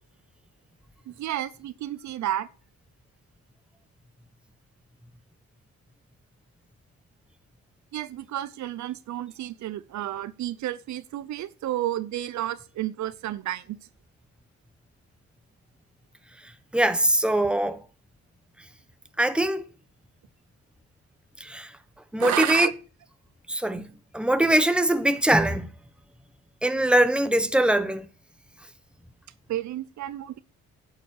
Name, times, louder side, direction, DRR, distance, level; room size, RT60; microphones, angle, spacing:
voice 1, 1.1-2.5 7.9-13.8 22.2-22.7 29.5-30.4, right 13 dB, 70° right, 0.7 m, -31 dB
voice 2, 16.7-17.8 19.2-19.6 21.4-21.7 22.1-22.7 23.5-23.9 24.1-25.7 26.6-28.1, right 1 dB, 5° right, 1.2 m, -22 dB
9.9 x 7.3 x 6.6 m
cardioid pair, 90°, 30 cm